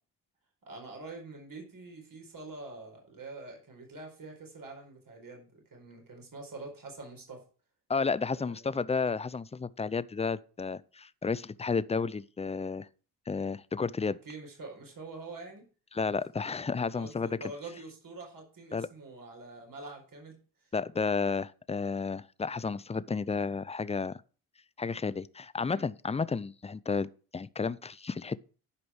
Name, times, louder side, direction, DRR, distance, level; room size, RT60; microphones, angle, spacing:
voice 1, 0.7-7.5 8.3-8.8 14.0-15.6 16.9-20.7 25.6-25.9, right 3 dB, 45° right, 4.6 m, -46 dB
voice 2, 7.9-12.9 13.3-14.2 15.9-17.4 18.7-18.9 20.7-24.2 24.8-28.4, left 4 dB, 15° left, 0.5 m, -32 dB
11.0 x 5.2 x 6.3 m
supercardioid pair, 55°, 47 cm